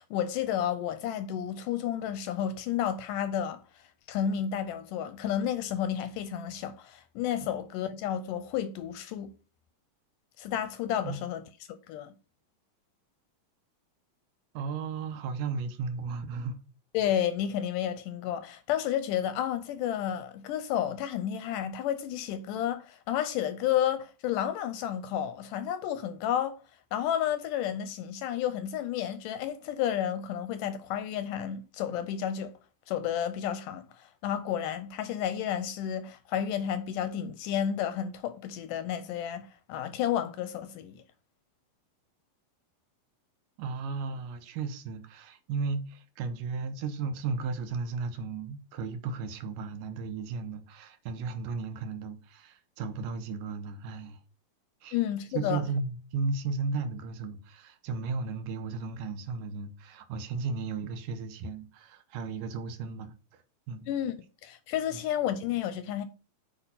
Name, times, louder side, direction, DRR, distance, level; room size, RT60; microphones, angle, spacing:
voice 1, 0.0-3.6 4.1-9.3 10.4-11.4 11.9-12.1 16.9-26.6 26.9-32.5 32.9-41.0 54.9-55.6 63.9-64.1 64.4-66.1, left 10 dB, 80° left, 2.0 m, -31 dB
voice 2, 14.5-16.6 43.6-54.2 54.8-55.0 55.3-63.4 63.7-63.9 64.9-65.0, right 4 dB, 75° right, 2.2 m, -35 dB
8.2 x 3.5 x 5.6 m
omnidirectional pair, 4.1 m